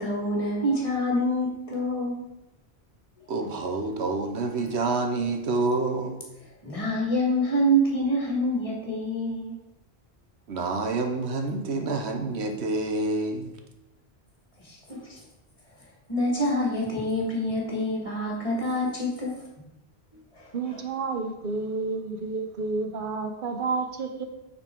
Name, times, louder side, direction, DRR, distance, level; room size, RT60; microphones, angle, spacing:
voice 1, 0.0-2.3 3.2-3.3 6.6-9.6 10.5-10.6 14.6-15.2 16.1-19.4 20.3-20.8, equal, 30° left, -3 dB, 1.9 m, -27 dB
voice 2, 3.3-6.2 10.5-13.5, right 3 dB, 80° right, 5 dB, 1.2 m, -28 dB
voice 3, 20.5-24.3, right 4 dB, 55° right, 6 dB, 1.0 m, -30 dB
9.2 x 4.2 x 4.5 m, 0.95 s
omnidirectional pair, 1.1 m